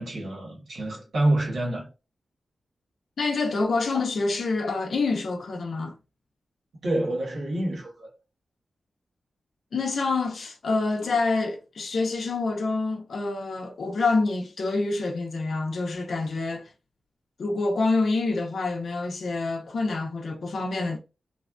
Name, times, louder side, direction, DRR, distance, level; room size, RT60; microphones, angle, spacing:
voice 1, 0.0-1.9 6.8-8.1, right 1 dB, 75° right, 1.5 m, -27 dB
voice 2, 3.2-5.9 9.7-16.7 17.4-21.0, left 3 dB, 60° left, 0.5 m, -27 dB
3.3 x 2.1 x 2.4 m
wide cardioid pair, 160°, 0 cm